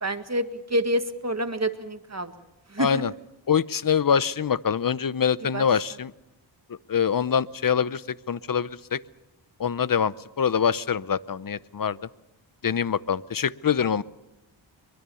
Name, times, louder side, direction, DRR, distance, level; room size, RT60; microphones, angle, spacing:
voice 1, 0.0-2.3 2.7-3.0 5.5-5.7, right 1 dB, 35° right, 9 dB, 1.8 m, -27 dB
voice 2, 2.8-3.1 3.5-6.1 6.9-9.0 9.6-12.0 12.6-14.0, left 7 dB, 45° left, 18 dB, 0.8 m, -24 dB
23.5 x 23.5 x 7.0 m, 0.96 s
wide cardioid pair, 80°, 47 cm